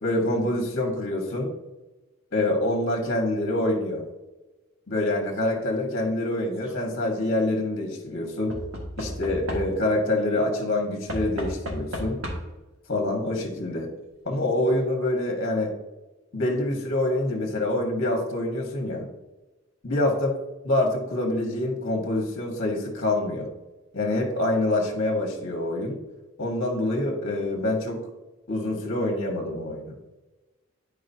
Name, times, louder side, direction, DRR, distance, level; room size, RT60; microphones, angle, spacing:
voice 1, 0.0-1.5 2.3-4.0 4.9-8.5 9.0-12.2 12.9-13.9 14.2-15.7 16.3-19.1 19.8-20.3 20.6-23.5 23.9-26.0 26.4-28.0 28.5-29.9, left 1 dB, 55° left, -1 dB, 1.4 m, -26 dB
Knock / Wood, 6.3-6.8 8.5-10.0 11.1-12.7 13.7-13.8 14.0-14.1, equal, 75° right, 1.6 m, -34 dB
10.5 x 4.8 x 2.7 m, 1.1 s
head